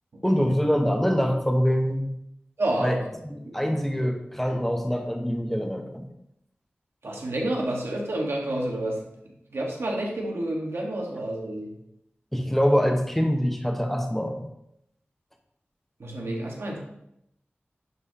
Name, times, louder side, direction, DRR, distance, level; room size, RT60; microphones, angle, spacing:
voice 1, 0.2-2.2 2.8-3.0 3.2-6.1 12.3-14.5, equal, 5° left, 3 dB, 1.0 m, -24 dB
voice 2, 2.6-3.0 3.5-3.8 7.0-9.0 9.5-11.7 16.0-16.8, right 1 dB, 90° right, -1 dB, 1.4 m, -29 dB
11.0 x 4.7 x 2.8 m, 0.79 s
wide cardioid pair, 50°, 4 cm